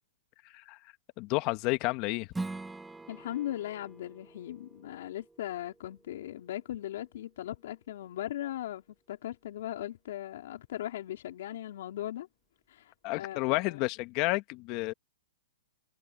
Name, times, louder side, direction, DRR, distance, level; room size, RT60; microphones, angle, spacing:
voice 1, 0.4-0.8 1.2-2.3 13.0-14.9, left 23 dB, 35° left, 1.5 m, -31 dB
Strum, 2.3-7.5, right 3 dB, 5° right, 2.1 m, -44 dB
voice 2, 3.1-12.3 12.7-13.8, left 13 dB, 60° left, 3.7 m, -38 dB
hypercardioid pair, 145°, 0 cm